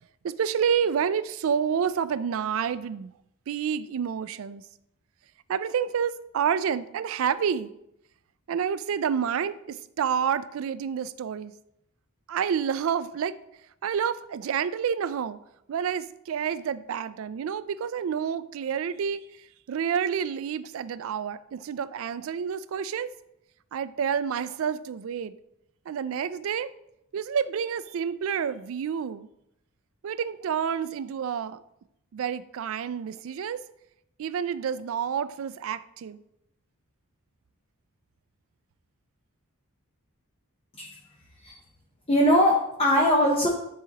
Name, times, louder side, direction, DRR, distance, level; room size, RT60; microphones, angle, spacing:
voice 1, 0.2-3.1 3.5-4.6 5.5-7.7 8.5-11.5 12.3-13.4 13.8-15.4 15.7-23.1 23.7-25.3 25.9-26.7 27.1-29.3 30.0-31.6 32.1-33.6 34.2-36.2, right 7 dB, 65° right, 0.3 m, -29 dB
voice 2, 42.1-43.5, equal, 25° left, 0.8 m, -21 dB
10.0 x 3.9 x 2.9 m
head